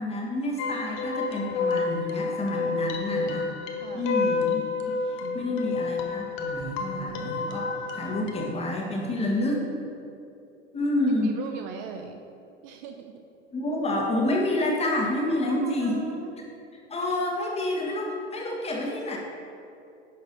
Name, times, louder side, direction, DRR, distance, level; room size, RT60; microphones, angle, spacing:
voice 1, 0.0-3.5 3.9-4.6 5.0-9.6 10.7-11.4 13.5-16.0 16.7-19.2, left 1 dB, 20° left, -1 dB, 1.6 m, -28 dB
sound 1, 0.6-8.5, left 4 dB, 35° left, 1.0 m, -29 dB
voice 2, 3.8-4.1 5.2-5.7 11.2-12.2 12.6-13.2 15.4-16.3, right 6 dB, 45° right, 5 dB, 0.6 m, -40 dB
10.0 x 6.0 x 4.0 m, 2.6 s
figure-of-eight pair, 85°, 34 cm